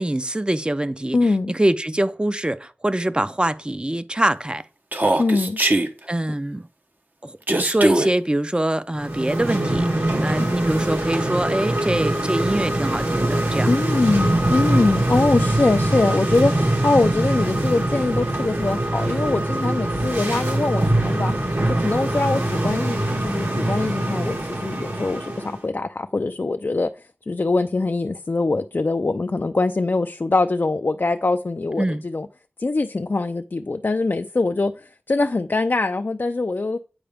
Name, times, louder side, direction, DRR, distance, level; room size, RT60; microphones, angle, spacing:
voice 1, 0.0-4.6 6.1-6.7 7.2-13.7 31.8-32.0, right 1 dB, 25° right, 0.5 m, -24 dB
voice 2, 1.1-1.5 5.2-5.6 10.4-10.5 13.7-21.3 21.8-26.9 27.3-32.3 32.6-36.8, left 3 dB, 55° left, 0.4 m, -23 dB
Human voice, 4.9-5.9 7.5-8.1, right 1 dB, 45° right, 0.9 m, -20 dB
sound 1, 8.9-25.6, right 1 dB, 65° right, 2.4 m, -23 dB
8.7 x 4.7 x 3.4 m
wide cardioid pair, 55°, 4 cm